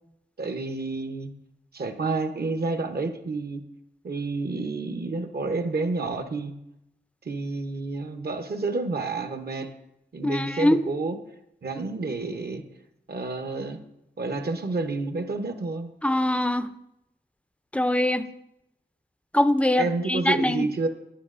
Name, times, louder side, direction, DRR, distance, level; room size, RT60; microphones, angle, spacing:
voice 1, 0.4-1.3 1.7-3.6 4.0-6.5 7.2-9.7 10.1-11.2 11.6-12.6 13.1-13.8 14.2-15.9 19.8-20.9, right 3 dB, 60° right, 8 dB, 0.7 m, -29 dB
voice 2, 10.2-10.8 16.0-16.7 17.7-18.3 19.3-20.7, left 1 dB, 5° left, 12 dB, 0.4 m, -23 dB
9.9 x 8.5 x 2.5 m, 0.84 s
cardioid pair, 45°, 19 cm